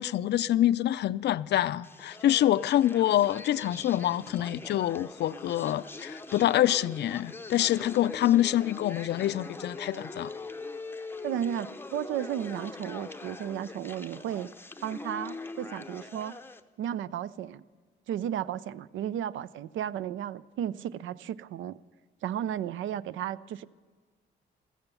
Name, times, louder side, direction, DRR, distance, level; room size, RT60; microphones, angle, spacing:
voice 1, 0.0-10.3, left 12 dB, 60° left, 0.4 m, -26 dB
sound 1, 1.8-16.6, left 3 dB, 10° left, 0.6 m, -42 dB
voice 2, 11.2-14.5 14.8-16.4 16.8-17.6 18.1-21.8 22.2-23.7, right 10 dB, 75° right, 0.5 m, -34 dB
15.0 x 14.0 x 6.9 m
cardioid pair, 90°, 20 cm